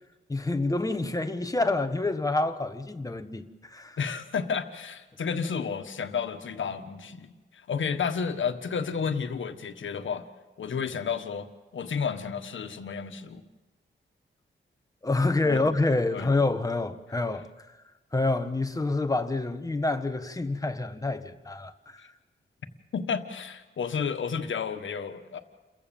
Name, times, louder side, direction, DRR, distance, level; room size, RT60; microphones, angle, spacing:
voice 1, 0.3-4.0 15.0-17.5 18.1-22.0, left 2 dB, 15° left, 1.2 m, -27 dB
voice 2, 4.0-10.2 10.6-11.5 11.7-13.4 15.4-15.6 16.1-16.3 22.0-22.1 22.9-25.4, left 6 dB, 75° left, 1.5 m, -31 dB
29.0 x 15.0 x 7.1 m
wide cardioid pair, 135°, 20 cm